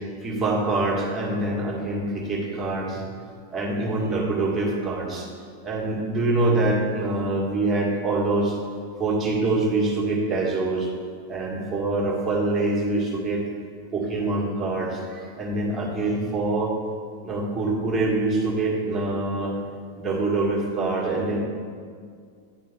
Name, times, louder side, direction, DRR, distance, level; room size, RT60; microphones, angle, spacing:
voice 1, 0.2-3.0 3.5-5.3 5.6-8.6 9.0-10.9 11.3-13.4 13.9-16.8 17.2-19.6 20.0-21.4, right 2 dB, 15° right, -4 dB, 2.0 m, -25 dB
9.2 x 4.4 x 6.1 m, 2.1 s
figure-of-eight pair, 90°, 0 cm